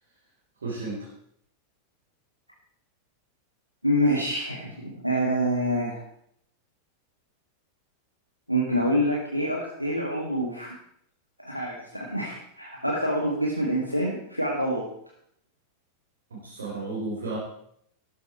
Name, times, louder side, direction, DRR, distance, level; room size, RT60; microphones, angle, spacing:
voice 1, 0.6-1.1 16.3-17.4, right 3 dB, 70° right, -5 dB, 4.1 m, -33 dB
voice 2, 3.8-6.0 8.5-10.8 11.4-14.9, equal, 90° right, -1 dB, 1.9 m, -26 dB
14.0 x 12.0 x 4.6 m, 0.70 s
figure-of-eight pair, 90°, 0 cm